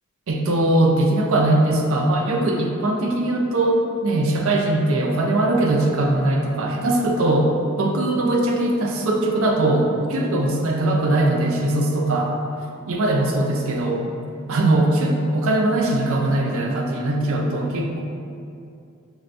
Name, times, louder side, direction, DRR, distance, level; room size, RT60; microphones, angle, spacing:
voice 1, 0.3-7.5 7.8-12.3 12.9-14.0 14.5-18.0, right 1 dB, 65° right, 1 dB, 0.5 m, -20 dB
6.2 x 2.1 x 2.5 m, 2.5 s
head